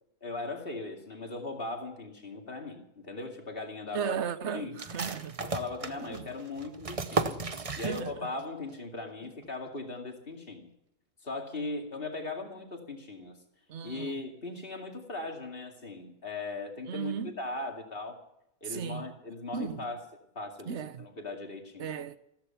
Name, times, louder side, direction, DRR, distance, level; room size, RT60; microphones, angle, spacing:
voice 1, 0.2-4.2 4.5-4.8 5.4-7.4 7.8-10.7 11.2-13.4 13.8-18.2 18.6-20.0 20.3-21.9, left 3 dB, 40° left, 2.6 m, -39 dB
voice 2, 3.9-5.4 6.0-6.3 7.8-8.1 13.7-14.2 16.9-17.3 18.7-19.1 19.5-19.8 20.7-21.0 21.8-22.2, right 7 dB, 55° right, 1.1 m, -35 dB
sound 1, 4.8-8.4 8.7-8.8 9.2-9.7, right 4 dB, 30° right, 0.7 m, -35 dB
15.0 x 14.5 x 5.8 m
omnidirectional pair, 1.6 m